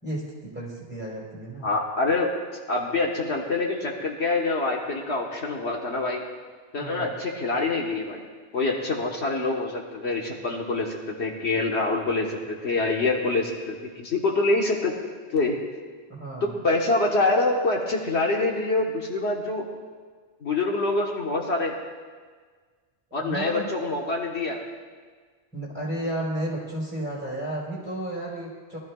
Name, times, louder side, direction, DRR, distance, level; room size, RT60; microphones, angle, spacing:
voice 1, 0.0-1.7 6.8-7.1 16.1-16.6 23.2-23.7 25.5-28.8, right 1 dB, 10° right, -6 dB, 4.3 m, -33 dB
voice 2, 1.6-2.3 2.7-6.2 6.7-8.2 8.5-14.9 15.3-15.6 16.4-19.6 20.4-21.8 23.1-24.6, left 2 dB, 70° left, -1 dB, 1.6 m, -25 dB
22.0 x 13.5 x 2.4 m, 1.5 s
omnidirectional pair, 1.2 m